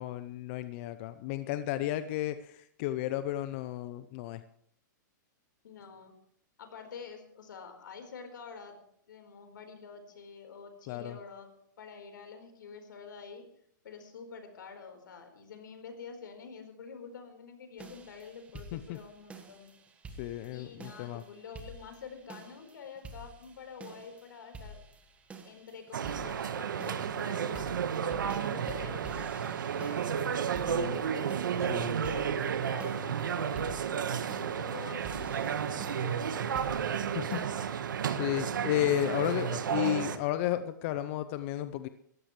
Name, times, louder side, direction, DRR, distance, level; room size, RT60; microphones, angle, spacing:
voice 1, 0.0-4.4 10.9-11.2 18.7-19.0 20.2-21.2 30.7-31.0 31.6-32.0 36.0-36.1 37.1-37.8 38.1-41.9, left 13 dB, 40° left, 12 dB, 0.7 m, -33 dB
voice 2, 5.6-6.1 6.6-8.8 9.1-11.5 11.8-13.4 13.8-19.7 20.5-24.8 25.4-31.3 32.0-36.9, left 5 dB, 80° left, 6 dB, 4.4 m, -47 dB
sound 1, 17.8-37.5, right 2 dB, 10° right, 1.6 m, -50 dB
sound 2, 25.9-40.2, right 8 dB, 85° right, 1.4 m, -32 dB
20.5 x 15.0 x 3.2 m, 0.67 s
hypercardioid pair, 150°, 10 cm